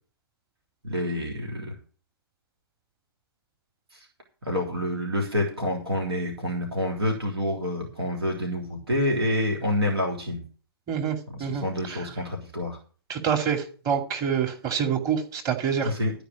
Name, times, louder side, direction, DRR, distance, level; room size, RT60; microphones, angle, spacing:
voice 1, 0.8-1.7 3.9-4.1 4.4-10.4 11.3-12.8 15.8-16.1, left 1 dB, 80° right, 2 dB, 3.4 m, -28 dB
voice 2, 10.9-11.6 13.1-15.9, right 7 dB, 25° right, 3 dB, 2.5 m, -26 dB
12.5 x 5.1 x 8.3 m, 0.39 s
figure-of-eight pair, 120°, 13 cm